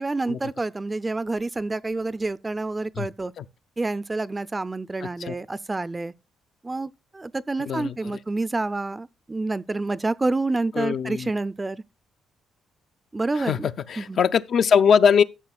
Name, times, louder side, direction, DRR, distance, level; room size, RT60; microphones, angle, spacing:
voice 1, 0.0-3.3 3.8-6.1 6.6-11.8 13.1-13.7 14.0-14.2, right 2 dB, 20° right, 0.4 m, -28 dB
voice 2, 5.0-5.4 7.7-8.2 10.7-11.3 13.3-15.2, left 7 dB, 60° left, 0.5 m, -22 dB
13.5 x 7.1 x 2.3 m
cardioid pair, 90°, 0 cm